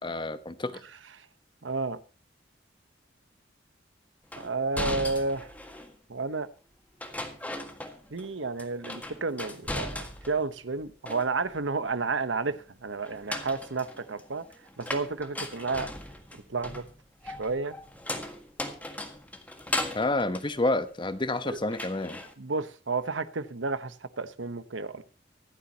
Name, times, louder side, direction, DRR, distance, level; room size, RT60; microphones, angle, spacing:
voice 1, 0.0-0.8 19.9-22.2, left 2 dB, 25° left, 1.0 m, -29 dB
voice 2, 1.6-2.0 4.4-5.5 6.1-6.5 8.1-14.4 14.8-15.9 16.3-16.8 17.2-17.8 21.4-21.6 22.4-25.0, right 3 dB, 85° right, 1.0 m, -31 dB
sound 1, 4.3-6.0 7.0-8.3 8.6-10.5 10.8-11.6 13.0-21.3 21.7-22.3, left 1 dB, 10° left, 1.7 m, -37 dB
24.5 x 8.5 x 2.9 m
head